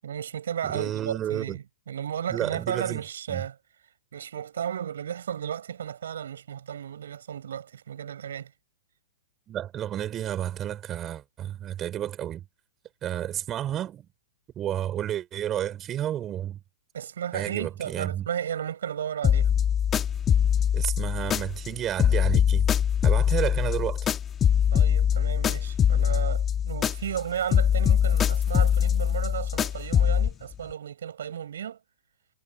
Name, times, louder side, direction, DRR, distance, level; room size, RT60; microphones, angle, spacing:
voice 1, 0.0-3.6 4.1-8.5 16.9-19.5 24.7-31.8, right 9 dB, 70° right, 7.4 m, -34 dB
voice 2, 0.6-1.6 2.3-3.0 3.3-3.4 9.5-12.4 13.0-14.1 14.6-16.6 17.3-18.2 20.7-22.7 23.0-24.1, right 11 dB, 25° right, 4.8 m, -31 dB
sound 1, 19.2-21.7 22.0-27.2 27.5-30.3, left 8 dB, 20° left, 1.4 m, -23 dB
hypercardioid pair, 125°, 0 cm